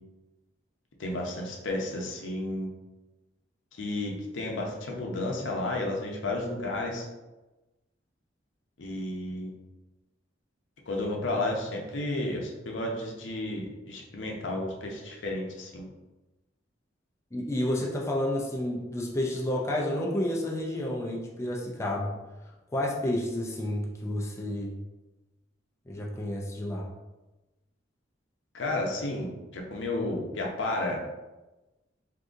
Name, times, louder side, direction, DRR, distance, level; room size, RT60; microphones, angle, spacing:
voice 1, 1.0-2.7 3.7-7.1 8.8-9.5 10.9-15.9 28.5-31.0, left 2 dB, 80° left, 0 dB, 0.6 m, -32 dB
voice 2, 17.3-22.1 22.7-24.7 25.9-26.9, left 1 dB, 15° left, -2 dB, 0.4 m, -30 dB
3.7 x 2.7 x 2.5 m, 1.1 s
head